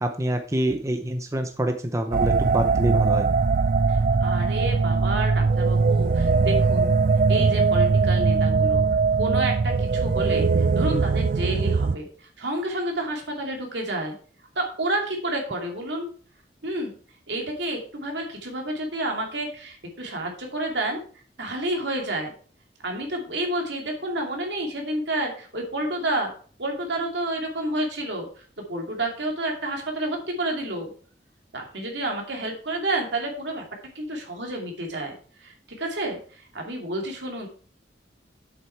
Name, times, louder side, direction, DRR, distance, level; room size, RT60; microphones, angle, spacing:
voice 1, 0.0-3.3, right 1 dB, 15° right, 6 dB, 0.7 m, -26 dB
sound 1, 2.1-12.0, right 4 dB, 50° right, 0.4 m, -21 dB
voice 2, 3.9-6.9 7.3-8.8 9.2-10.5 10.7-12.1 12.4-14.2 14.6-16.1 16.6-16.9 17.3-21.0 21.4-22.3 22.8-26.3 26.6-28.3 28.7-30.9 31.5-33.6 33.9-35.1 35.4-37.5, right 1 dB, 80° right, 1 dB, 2.5 m, -29 dB
7.8 x 7.5 x 4.6 m, 0.43 s
head